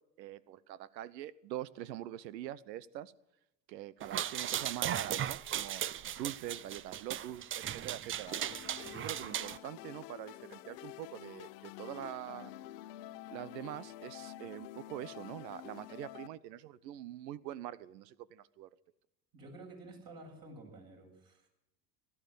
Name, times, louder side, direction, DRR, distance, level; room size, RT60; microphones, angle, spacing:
voice 1, 0.2-3.1 3.7-8.5 8.9-12.5 13.3-18.7, right 12 dB, 80° right, 19 dB, 0.9 m, -44 dB
sound 1, 4.0-9.6, right 10 dB, 25° right, 0.5 m, -37 dB
sound 2, 8.3-16.3, left 14 dB, 70° left, 1.0 m, -49 dB
voice 2, 19.3-21.5, right 2 dB, 45° right, 1 dB, 7.6 m, -51 dB
17.0 x 12.5 x 6.7 m, 0.87 s
hypercardioid pair, 85°, 50 cm